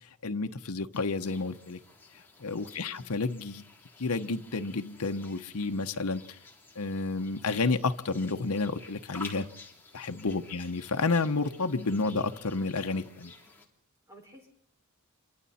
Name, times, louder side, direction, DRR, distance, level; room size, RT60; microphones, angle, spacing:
voice 1, 0.2-1.8 2.4-3.6 4.0-6.4 6.8-9.5 9.9-13.3, left 3 dB, 85° left, 6 dB, 1.0 m, -30 dB
sound 1, 0.9-13.7, left 3 dB, 10° left, 3.2 m, -51 dB
voice 2, 2.8-3.1 10.4-10.6 14.1-14.5, equal, 15° right, 0 dB, 5.4 m, -54 dB
27.5 x 23.5 x 4.3 m, 0.68 s
head